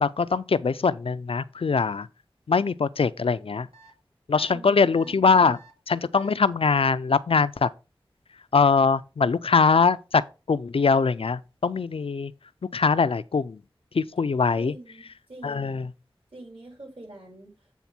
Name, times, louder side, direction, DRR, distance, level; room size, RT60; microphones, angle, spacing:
voice 1, 0.0-2.1 2.5-3.7 4.3-5.6 5.9-7.7 8.5-10.2 10.5-12.3 12.7-13.6 13.9-14.7 15.4-15.9, left 5 dB, 80° left, 0.4 m, -22 dB
sound 1, 3.7-3.9 4.3-4.5 4.9-5.1 5.5-5.7 6.1-6.3, right 4 dB, 85° right, 2.2 m, -52 dB
voice 2, 4.5-5.3 14.6-15.8 16.3-17.5, right 2 dB, 65° right, 5.3 m, -45 dB
8.3 x 3.6 x 6.0 m
wide cardioid pair, 50°, 9 cm